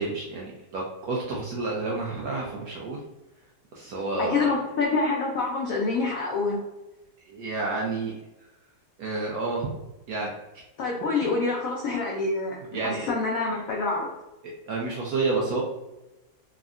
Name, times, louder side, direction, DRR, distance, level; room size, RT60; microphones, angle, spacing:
voice 1, 0.0-3.0 3.7-4.5 7.3-8.2 9.0-9.7 10.1-10.3 12.7-13.1 14.4-15.6, right 3 dB, 75° right, -3 dB, 0.8 m, -30 dB
voice 2, 4.2-6.6 10.8-12.6 12.8-14.1, left 3 dB, 85° left, -2 dB, 0.7 m, -26 dB
3.5 x 2.0 x 2.4 m, 1.0 s
omnidirectional pair, 2.0 m